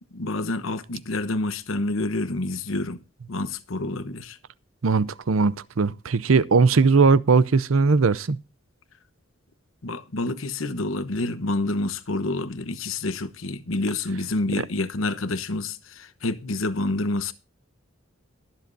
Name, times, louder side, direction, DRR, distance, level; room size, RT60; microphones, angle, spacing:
voice 1, 0.1-3.0 3.3-4.4 9.8-17.3, left 2 dB, 85° left, 1.0 m, -28 dB
voice 2, 4.8-8.4, right 4 dB, 85° right, 0.6 m, -19 dB
22.0 x 7.7 x 2.6 m
head